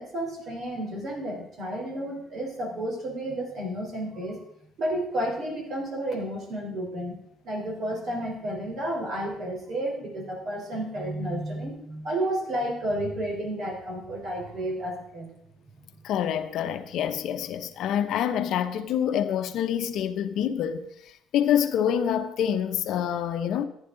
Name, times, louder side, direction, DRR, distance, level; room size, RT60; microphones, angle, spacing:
voice 1, 0.0-4.4 4.8-7.2 7.4-15.3 15.8-15.9, right 1 dB, 50° right, 3.9 m, -31 dB
voice 2, 16.0-20.9 21.3-23.7, left 9 dB, 65° left, 0.9 m, -26 dB
15.0 x 10.0 x 3.9 m
cardioid pair, 135°, 0 cm